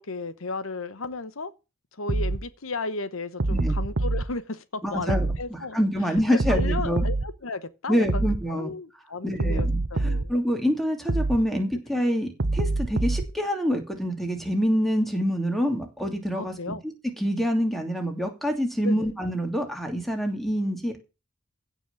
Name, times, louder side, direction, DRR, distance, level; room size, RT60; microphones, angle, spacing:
voice 1, 0.0-1.5 2.0-5.8 6.3-8.2 8.5-10.3 16.3-16.8 18.8-19.1, left 3 dB, 70° left, 1.0 m, -34 dB
sound 1, 2.1-2.4 3.4-4.2 5.1-5.4 6.4-7.3 8.1-8.4 9.4-10.3 11.1-11.4 12.4-13.3, right 2 dB, 60° right, 1.0 m, -25 dB
voice 2, 4.8-7.0 7.9-8.7 9.2-16.7 17.2-21.0, equal, ahead, 2.9 m, -26 dB
16.0 x 6.1 x 7.0 m
head